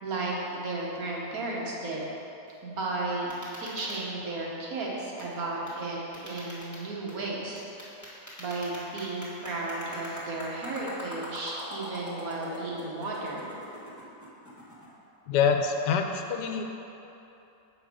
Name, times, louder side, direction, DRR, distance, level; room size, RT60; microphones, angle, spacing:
voice 1, 0.0-2.0 2.6-3.3 3.6-7.6 8.4-13.6, right 2 dB, 60° right, -4 dB, 1.5 m, -34 dB
sound 1, 2.5-2.6 3.3-4.0 5.2-5.4 5.7-5.8 6.1-7.2 7.6-14.9, left 1 dB, 10° left, 1.3 m, -43 dB
voice 2, 15.3-16.6, left 6 dB, 85° left, 4 dB, 1.2 m, -25 dB
7.2 x 5.2 x 4.9 m, 3.0 s
omnidirectional pair, 1.8 m